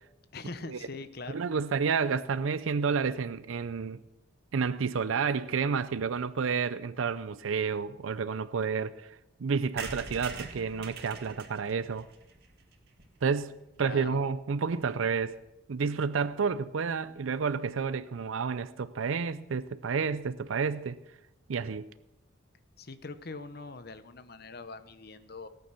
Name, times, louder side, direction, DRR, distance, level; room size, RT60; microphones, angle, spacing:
voice 1, 0.3-1.4 13.8-14.2 22.8-25.5, left 3 dB, 50° left, 0.9 m, -42 dB
voice 2, 1.3-4.0 4.5-9.1 9.4-12.1 13.2-13.5 13.8-15.4 15.7-21.0 21.5-21.9, right 5 dB, 90° right, 0.5 m, -30 dB
sound 1, 9.8-13.5 13.9-14.0 14.2-14.3 14.5-14.6 14.8-15.0, right 4 dB, 55° right, 2.1 m, -44 dB
18.5 x 9.1 x 6.8 m
head